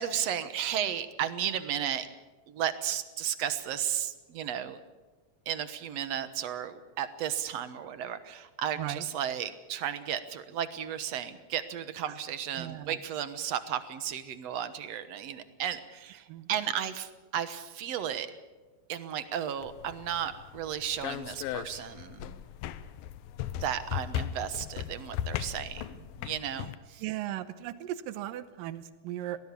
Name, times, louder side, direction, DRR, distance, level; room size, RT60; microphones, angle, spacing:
voice 1, 0.0-2.1 2.5-4.8 5.5-18.3 18.9-22.4 23.5-27.0, right 9 dB, 60° right, 12 dB, 1.9 m, -34 dB
voice 2, 12.6-13.0 16.3-16.5 27.0-29.4, right 13 dB, 85° right, 14 dB, 2.6 m, -37 dB
sound 1, 19.6-26.8, left 11 dB, 90° left, 2.6 m, -37 dB
23.0 x 18.5 x 7.0 m, 1.2 s
omnidirectional pair, 3.9 m